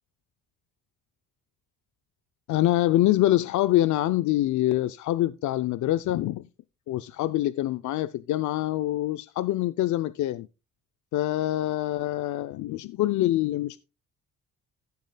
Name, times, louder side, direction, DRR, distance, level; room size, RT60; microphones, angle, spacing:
voice 1, 2.5-6.4 6.9-10.5 11.1-13.8, left 15 dB, 75° left, 0.5 m, -25 dB
15.0 x 7.3 x 2.2 m
cardioid pair, 90°, 30 cm